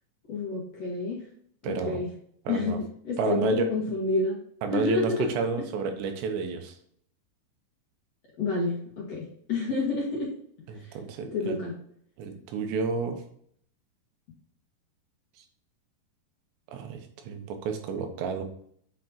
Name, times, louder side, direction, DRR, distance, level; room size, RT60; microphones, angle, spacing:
voice 1, 0.3-1.3 1.6-2.1 2.5-4.4 4.7-5.3 8.4-10.3 10.7-11.0 11.3-11.7, left 3 dB, 50° left, -4 dB, 2.1 m, -29 dB
voice 2, 1.6-2.0 2.5-2.8 3.2-3.7 4.6-6.7 10.7-11.6 12.2-13.2 16.7-18.4, right 4 dB, 85° right, 5 dB, 3.2 m, -30 dB
8.3 x 5.2 x 2.8 m, 0.64 s
omnidirectional pair, 5.0 m